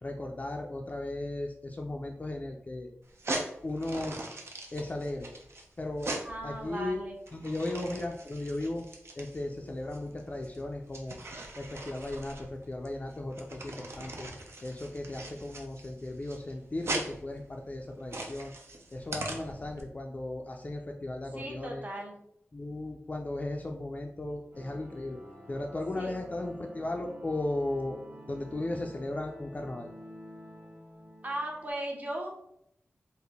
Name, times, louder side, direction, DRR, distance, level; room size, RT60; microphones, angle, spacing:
voice 1, 0.0-2.9 3.6-4.2 4.7-5.3 5.8-6.1 6.4-7.0 7.3-8.9 9.2-11.2 11.6-14.3 14.6-18.5 18.9-21.8 22.5-25.2 25.5-28.0 28.3-29.9, left 2 dB, 30° left, 1 dB, 0.3 m, -36 dB
sound 1, 3.1-19.8, right 2 dB, 70° right, 0.5 m, -40 dB
voice 2, 6.2-7.2 21.3-22.1 25.9-26.2 31.2-32.4, right 1 dB, 35° right, 0 dB, 0.8 m, -37 dB
sound 2, 24.5-31.7, equal, 85° right, 1.2 m, -49 dB
3.6 x 2.1 x 3.4 m, 0.74 s
wide cardioid pair, 65°, 5 cm